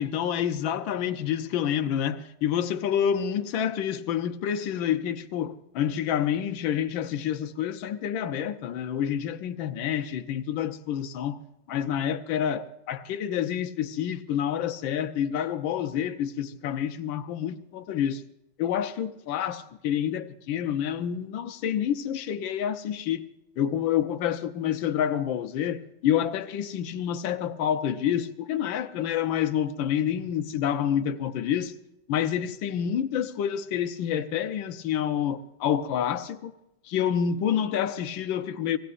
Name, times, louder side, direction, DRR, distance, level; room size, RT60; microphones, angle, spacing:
voice 1, 0.0-11.4 11.7-18.2 18.6-23.2 23.6-31.7 32.1-36.5 36.9-38.8, left 9 dB, 75° left, 1.6 m, -28 dB
26.0 x 18.5 x 2.5 m
omnidirectional pair, 2.2 m